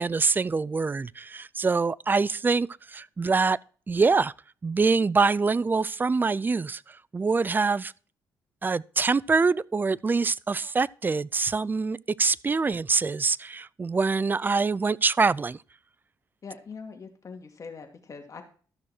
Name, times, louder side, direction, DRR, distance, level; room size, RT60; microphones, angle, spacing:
voice 1, 0.0-3.6 3.9-4.3 4.6-6.8 7.1-7.9 8.6-15.6, right 4 dB, 25° right, 0.4 m, -25 dB
voice 2, 16.4-18.4, left 5 dB, 45° left, 2.6 m, -42 dB
13.0 x 6.3 x 4.4 m
cardioid pair, 85°, 8 cm